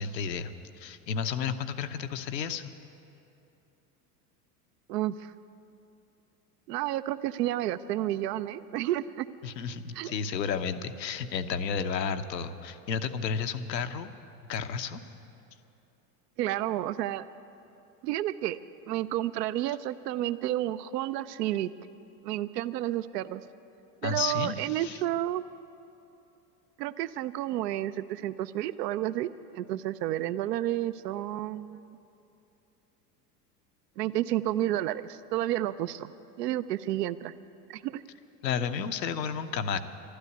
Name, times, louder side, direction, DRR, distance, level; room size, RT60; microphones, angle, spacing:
voice 1, 0.0-2.7 9.4-14.1 14.5-15.0 24.0-25.0 38.4-39.8, left 6 dB, 90° left, 9 dB, 0.9 m, -32 dB
voice 2, 4.9-5.3 6.7-9.3 9.9-10.1 16.4-17.2 18.0-18.6 18.9-21.7 22.2-23.4 24.0-25.4 26.8-31.8 34.0-36.1 36.4-37.3 37.7-38.0, right 13 dB, 80° right, 14 dB, 0.6 m, -31 dB
12.5 x 11.5 x 9.5 m, 2.8 s
hypercardioid pair, 90°, 49 cm